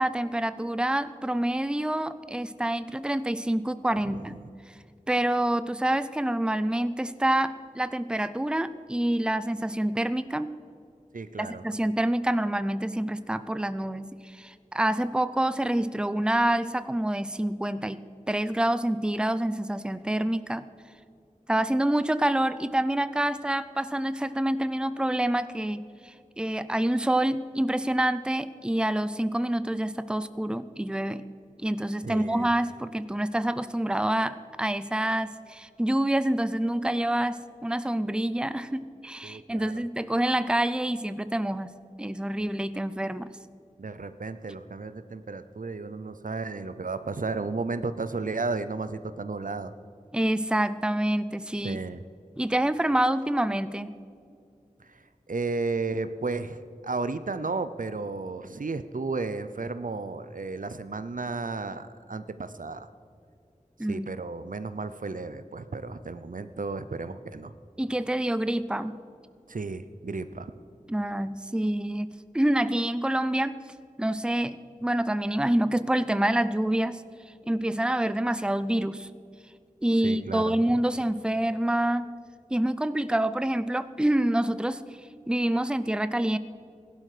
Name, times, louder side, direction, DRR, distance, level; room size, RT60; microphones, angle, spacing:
voice 1, 0.0-4.4 5.1-10.5 11.4-18.0 18.3-20.6 21.5-31.2 31.6-41.7 42.0-43.3 50.1-51.8 52.4-54.0 63.8-64.1 67.8-69.0 70.9-73.5 74.0-77.0 77.5-79.1 79.8-82.1 82.5-84.8 85.3-86.4, right 1 dB, 5° right, 14 dB, 0.5 m, -27 dB
voice 2, 4.0-4.4 11.1-11.6 32.0-32.5 39.2-39.8 42.4-42.5 43.8-49.7 51.6-52.0 54.8-62.9 63.8-67.5 69.5-70.5 80.0-80.6, right 3 dB, 80° right, 12 dB, 0.6 m, -33 dB
16.5 x 11.5 x 5.0 m, 2.5 s
wide cardioid pair, 40°, 14 cm